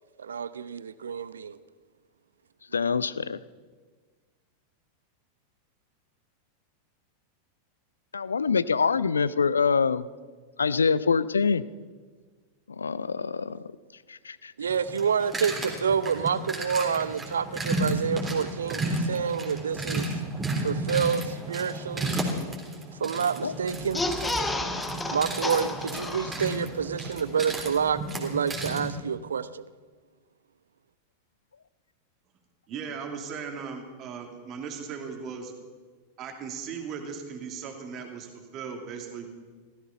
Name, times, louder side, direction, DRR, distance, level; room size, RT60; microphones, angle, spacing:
voice 1, 0.2-1.6 14.6-20.1 20.6-22.2 23.0-24.0 25.1-29.6, right 7 dB, 70° right, 17 dB, 0.5 m, -28 dB
voice 2, 2.7-3.4 8.1-10.1 10.6-11.6 12.8-13.6 14.1-14.5 23.4-23.5, left 5 dB, 75° left, 19 dB, 0.5 m, -25 dB
sound 1, 14.7-29.0, right 1 dB, 15° right, 3.4 m, -33 dB
sound 2, 23.8-26.8 27.2-27.3 27.5-27.6, left 2 dB, 10° left, 1.5 m, -31 dB
voice 3, 32.7-35.5 36.2-39.3, right 6 dB, 35° right, 4 dB, 2.6 m, -37 dB
17.0 x 14.5 x 5.7 m, 1.5 s
figure-of-eight pair, 90°, 0 cm